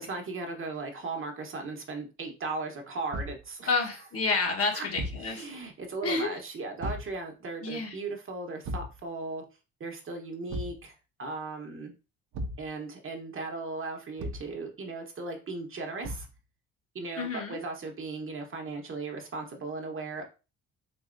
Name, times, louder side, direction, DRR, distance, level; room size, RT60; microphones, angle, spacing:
voice 1, 0.0-4.0 4.7-4.8 5.2-9.4 9.8-11.9 12.6-16.3 16.9-20.2, right 3 dB, 40° right, 3 dB, 1.0 m, -37 dB
Thump thud, 3.1-3.5 4.9-5.3 6.8-7.1 8.6-9.0 10.5-10.8 12.3-12.7 14.2-14.5 16.0-16.4, equal, 65° right, 0.7 m, -35 dB
voice 2, 3.7-5.6 6.0-6.4 7.6-8.0 17.2-17.6, left 3 dB, 45° left, 1 dB, 1.3 m, -30 dB
4.1 x 2.7 x 2.5 m, 0.31 s
supercardioid pair, 80°, 32 cm